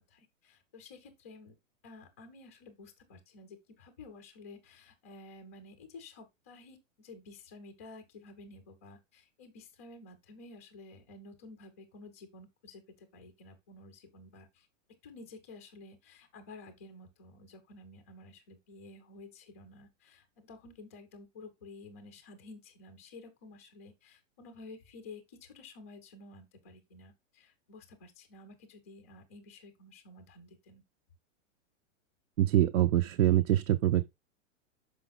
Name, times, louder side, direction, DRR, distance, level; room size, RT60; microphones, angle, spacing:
voice 1, 0.1-1.5 1.8-14.7 15.0-30.8, left 3 dB, 15° left, 0.3 m, -52 dB
voice 2, 32.4-34.1, right 12 dB, 75° right, 0.6 m, -25 dB
6.2 x 5.1 x 3.9 m
supercardioid pair, 165°, 39 cm